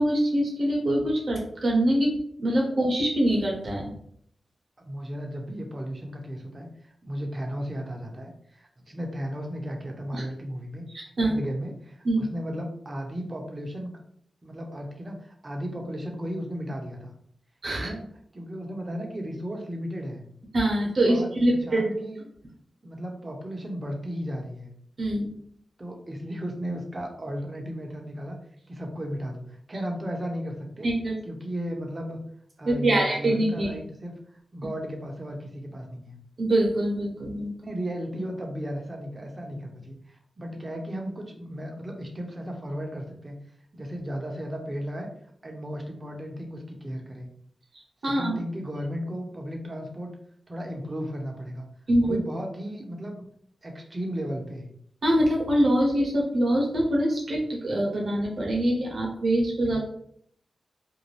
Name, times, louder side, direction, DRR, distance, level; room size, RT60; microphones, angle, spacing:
voice 1, 0.0-3.9 10.1-10.2 10.9-11.4 12.0-12.2 17.6-17.9 20.5-21.8 25.0-25.3 30.8-31.1 32.6-33.7 36.4-37.5 48.0-48.3 51.9-52.2 55.0-59.8, right 1 dB, 65° right, -1 dB, 1.0 m, -24 dB
voice 2, 4.8-10.9 11.2-13.9 14.4-17.1 17.7-18.0 18.3-20.2 21.1-22.3 22.8-24.7 25.8-28.4 28.7-30.9 31.2-32.2 32.6-36.2 37.6-43.4 43.7-45.1 45.4-47.3 48.0-50.1 50.5-51.7 52.0-53.2 53.6-54.7 59.7-59.8, equal, 35° right, 2 dB, 0.8 m, -35 dB
2.6 x 2.2 x 3.2 m, 0.66 s
cardioid pair, 40°, 0 cm